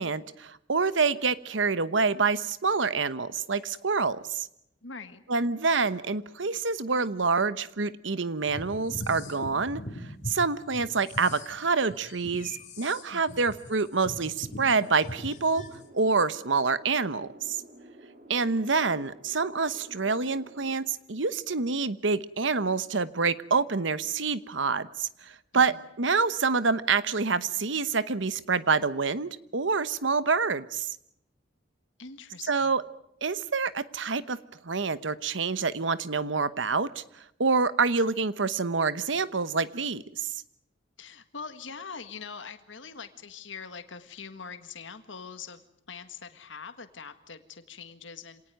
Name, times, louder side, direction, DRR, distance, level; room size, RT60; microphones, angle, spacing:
voice 1, 0.0-4.5 5.3-15.6 15.9-17.6 18.3-31.0 32.5-32.8 33.2-34.4 34.6-37.0 37.4-40.3, right 4 dB, 70° right, 15 dB, 1.1 m, -27 dB
voice 2, 4.8-5.2 13.1-13.4 25.5-25.8 32.0-32.7 41.0-45.6 45.9-48.4, left 5 dB, 75° left, 9 dB, 1.7 m, -43 dB
sound 1, 8.5-10.4 10.7-15.8, left 1 dB, 40° left, 3.0 m, -40 dB
sound 2, 14.4-20.8, right 1 dB, 50° right, 4.2 m, -51 dB
26.5 x 18.5 x 9.3 m, 0.79 s
head